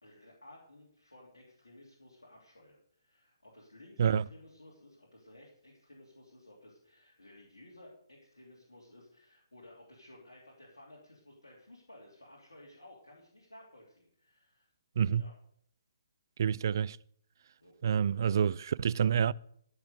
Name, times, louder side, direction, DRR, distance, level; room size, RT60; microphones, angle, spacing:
voice 1, 0.0-14.7 15.2-15.3 17.6-17.7 18.0-18.1, left 1 dB, 90° left, 3.0 m, -56 dB
voice 2, 15.0-15.3 16.4-17.0 17.8-19.3, right 8 dB, 55° right, 0.4 m, -28 dB
14.0 x 6.0 x 6.7 m
figure-of-eight pair, 135°, 2 cm